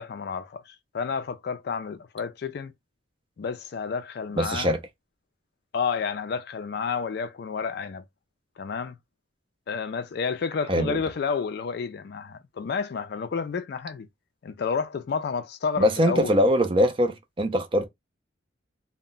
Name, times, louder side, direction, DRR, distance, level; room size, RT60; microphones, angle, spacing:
voice 1, 0.0-2.7 3.4-4.7 5.7-8.0 8.6-9.0 9.7-14.1 14.4-16.4, left 5 dB, 55° left, 0.3 m, -30 dB
voice 2, 4.4-4.8 10.7-11.0 15.8-17.9, equal, 25° right, 0.4 m, -22 dB
2.1 x 2.1 x 3.7 m
head